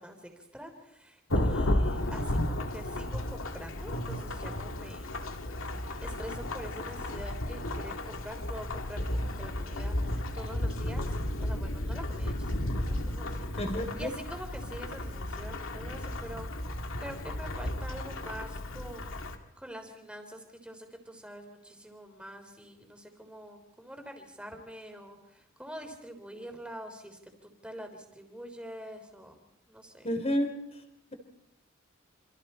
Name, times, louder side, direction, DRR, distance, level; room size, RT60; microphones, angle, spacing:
voice 1, 0.0-5.1 6.0-13.5 14.0-19.2 19.6-30.1, equal, 5° right, 4 dB, 3.6 m, -45 dB
Thunderstorm / Rain, 1.3-19.4, left 1 dB, 75° left, 2.3 m, -33 dB
voice 2, 13.6-14.1 30.0-30.6, equal, 30° left, 6 dB, 3.5 m, -30 dB
27.5 x 27.0 x 4.4 m, 0.87 s
head